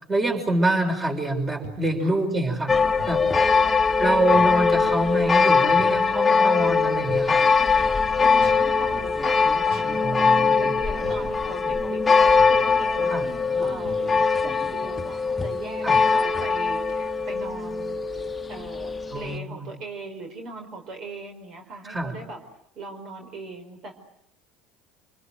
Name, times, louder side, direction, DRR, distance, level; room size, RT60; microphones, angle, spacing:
voice 1, 0.1-2.7 3.1-3.3 4.0-7.4 10.0-10.7 13.1-13.3 15.8-16.0 19.1-19.7 21.8-22.2, right 1 dB, 25° right, 4 dB, 6.1 m, -25 dB
sound 1, 1.6-2.0 3.0-3.3 4.3-4.6 5.8-6.1 7.1-7.4 8.4-8.7 9.7-10.0 11.0-11.4 12.4-12.7 13.8-14.2, right 2 dB, 75° right, 7.1 m, -41 dB
sound 2, 2.7-19.4, left 5 dB, 20° left, 1.4 m, -21 dB
voice 2, 8.2-13.2 13.6-18.0 18.5-22.4 22.8-23.9, right 3 dB, 55° right, 3 dB, 5.2 m, -39 dB
28.0 x 21.0 x 9.3 m, 0.74 s
hypercardioid pair, 85°, 0 cm